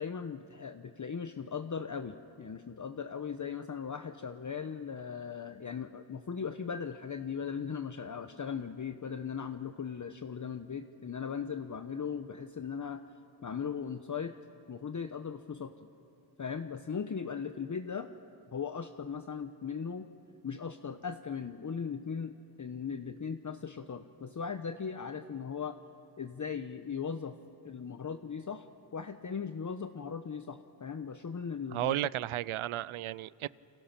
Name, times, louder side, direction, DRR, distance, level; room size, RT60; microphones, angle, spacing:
voice 1, 0.0-13.0 13.4-14.3 14.7-15.7 16.4-18.1 18.5-20.1 20.4-25.8 26.2-27.3 27.6-28.7 28.9-32.0, left 6 dB, 40° left, 8 dB, 1.0 m, -38 dB
voice 2, 31.7-33.5, right 14 dB, 85° right, 21 dB, 0.6 m, -33 dB
29.0 x 25.0 x 6.0 m, 2.6 s
cardioid pair, 65°, 48 cm